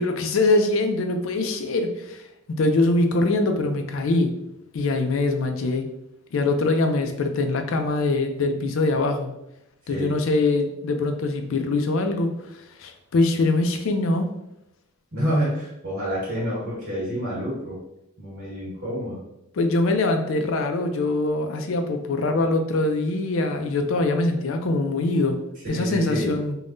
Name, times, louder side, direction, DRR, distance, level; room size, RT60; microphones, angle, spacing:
voice 1, 0.0-2.2 2.6-4.4 4.7-5.9 6.3-9.4 9.9-12.3 12.8-14.3 19.5-26.6, left 2 dB, 70° left, 6 dB, 0.4 m, -23 dB
voice 2, 15.1-17.8 18.2-19.2 25.7-26.3, equal, 55° right, -7 dB, 1.4 m, -28 dB
3.5 x 2.3 x 2.6 m, 0.85 s
head